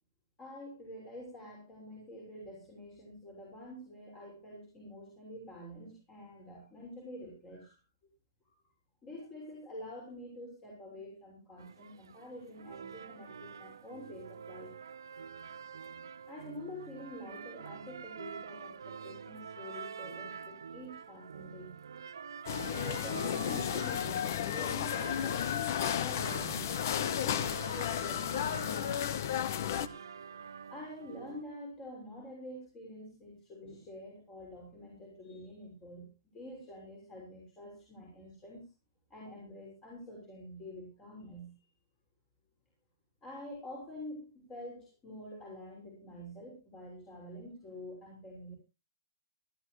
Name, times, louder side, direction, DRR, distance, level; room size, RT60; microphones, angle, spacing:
voice 1, 0.4-7.8 8.4-8.6 9.0-14.7 16.3-21.8 22.6-25.6 25.9-28.7 29.6-30.0 30.7-38.7 39.1-41.5 43.2-48.5, left 1 dB, 20° left, -2 dB, 6.6 m, -47 dB
sound 1, 11.6-31.4, right 6 dB, 80° right, 0.9 m, -47 dB
sound 2, 22.5-29.9, left 9 dB, 55° left, 1.0 m, -33 dB
18.5 x 13.5 x 3.2 m, 0.29 s
hypercardioid pair, 140°, 2 cm